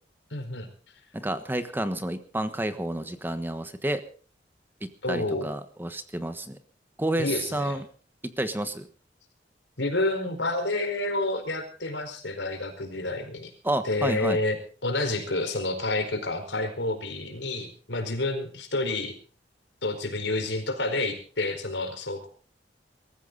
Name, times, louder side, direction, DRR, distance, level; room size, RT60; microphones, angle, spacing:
voice 1, 0.3-0.7 5.0-5.5 7.2-7.8 9.8-13.5 13.8-14.6 14.8-19.1 19.8-22.3, left 2 dB, 90° left, 6 dB, 4.7 m, -29 dB
voice 2, 1.1-4.0 4.8-6.6 7.0-7.8 8.2-8.9 13.6-14.4, right 1 dB, 10° right, 10 dB, 1.2 m, -30 dB
23.0 x 14.0 x 4.0 m, 0.40 s
head